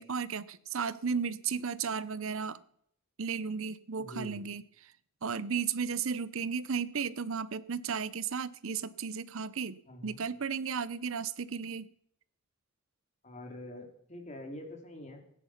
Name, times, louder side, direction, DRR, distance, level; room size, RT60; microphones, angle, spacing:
voice 1, 0.0-2.6 3.2-4.6 5.2-11.9, right 6 dB, 65° right, 17 dB, 0.7 m, -34 dB
voice 2, 4.0-4.5 9.9-10.2 13.2-15.2, left 1 dB, 30° left, 4 dB, 2.8 m, -45 dB
15.5 x 10.0 x 5.8 m, 0.68 s
head